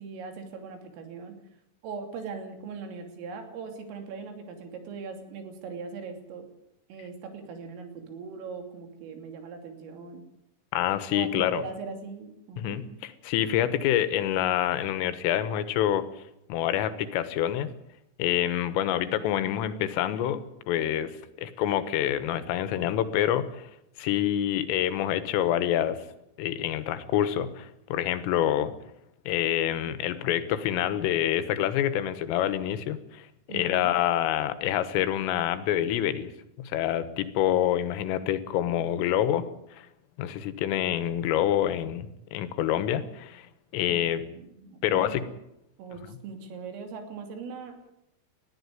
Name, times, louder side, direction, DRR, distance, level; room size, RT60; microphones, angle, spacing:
voice 1, 0.0-1.3 1.8-6.5 6.9-10.2 11.1-12.8 33.5-33.9 38.2-38.4 38.7-39.2 43.9-45.2 45.8-47.8, right 5 dB, 85° right, 5 dB, 5.5 m, -40 dB
voice 2, 10.7-11.6 12.6-16.0 16.5-17.7 18.2-23.5 24.0-26.0 26.4-28.7 29.3-33.3 33.5-36.3 36.6-39.5 40.2-42.1 42.3-43.5 43.7-44.2 44.8-45.2 46.1-46.2, left 11 dB, 85° left, 12 dB, 3.9 m, -27 dB
20.5 x 14.0 x 9.5 m, 0.82 s
omnidirectional pair, 5.7 m